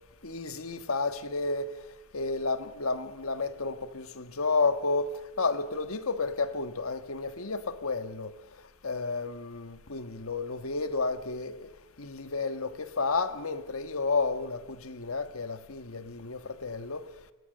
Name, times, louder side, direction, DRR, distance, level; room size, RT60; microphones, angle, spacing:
voice 1, 0.2-1.7 2.1-8.3 8.8-11.7 12.0-17.0, left 3 dB, 80° left, 1.5 m, -31 dB
28.5 x 25.5 x 6.7 m
head